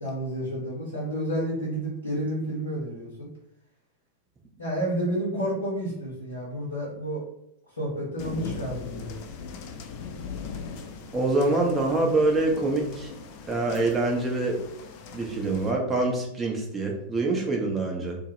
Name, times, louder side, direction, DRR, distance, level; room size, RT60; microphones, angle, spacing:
voice 1, 0.0-3.3 4.6-7.2 7.7-9.2, right 1 dB, 80° left, -6 dB, 0.7 m, -30 dB
sound 1, 8.2-15.7, left 5 dB, 45° left, 0.3 m, -40 dB
voice 2, 11.1-13.1 13.5-14.6 15.1-18.2, right 2 dB, 15° right, 0 dB, 0.6 m, -25 dB
2.1 x 2.0 x 2.9 m, 0.78 s
figure-of-eight pair, 90°, 0 cm